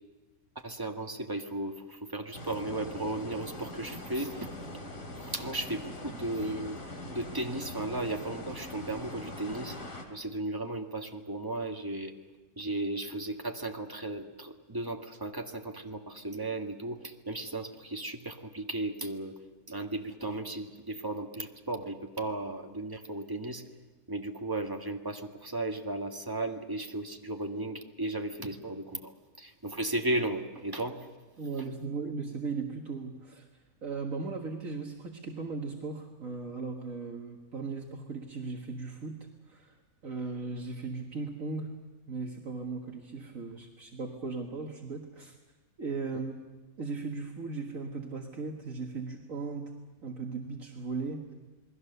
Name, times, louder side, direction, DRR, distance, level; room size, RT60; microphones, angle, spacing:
voice 1, 0.5-4.5 5.2-6.8 7.1-9.8 10.1-12.1 12.6-19.3 19.7-23.6 24.1-29.1 29.4-31.1, right 2 dB, 15° right, 3 dB, 1.6 m, -35 dB
sound 1, 2.3-10.0, left 1 dB, 65° left, 3.2 m, -42 dB
voice 2, 31.4-39.8 40.0-41.7 42.1-45.4 45.8-46.3 46.8-51.3, right 4 dB, 65° right, 1 dB, 2.0 m, -37 dB
28.5 x 21.0 x 6.8 m, 1.2 s
omnidirectional pair, 1.5 m